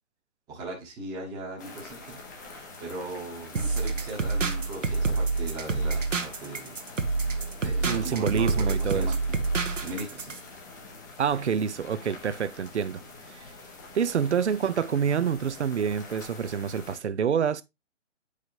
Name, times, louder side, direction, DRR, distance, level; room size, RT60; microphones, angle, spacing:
voice 1, 0.5-2.2 2.8-6.8 7.6-9.2 9.8-10.3, right 2 dB, 10° right, 1.0 m, -38 dB
sound 1, 1.6-17.0, left 3 dB, 15° left, 0.6 m, -46 dB
sound 2, 3.5-10.4, right 3 dB, 80° right, 1.1 m, -27 dB
voice 2, 7.9-9.1 11.2-13.0 13.3-13.5 13.9-17.6, right 7 dB, 65° right, 0.6 m, -27 dB
8.1 x 4.9 x 2.6 m
figure-of-eight pair, 135°, 37 cm